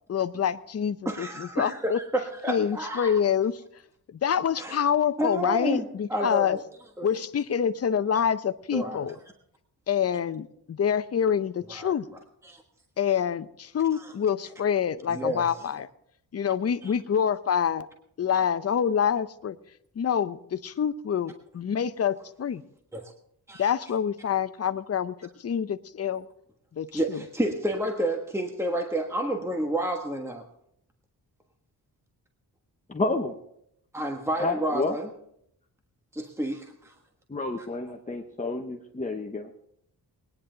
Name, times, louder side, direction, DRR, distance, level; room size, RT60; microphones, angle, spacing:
voice 1, 0.1-2.0 2.5-3.5 4.1-6.6 7.0-9.2 9.9-12.0 13.0-15.9 16.3-17.9 18.2-19.6 20.0-22.6 23.6-26.3 26.7-27.2, left 8 dB, 40° left, 12 dB, 0.6 m, -26 dB
voice 2, 1.0-3.2 4.6-4.8 5.2-6.6 7.0-7.1 8.7-9.0 11.7-11.9 12.4-12.6 13.9-14.1 15.1-15.6 16.8-16.9 22.9-23.1 23.5-23.7 26.9-30.4 33.9-35.1 36.1-36.9, right 1 dB, 5° right, 3 dB, 1.4 m, -30 dB
voice 3, 32.9-33.3 34.4-35.0 37.3-39.5, left 2 dB, 20° left, 2 dB, 1.0 m, -30 dB
20.0 x 10.0 x 3.9 m, 0.73 s
cardioid pair, 80°, 40 cm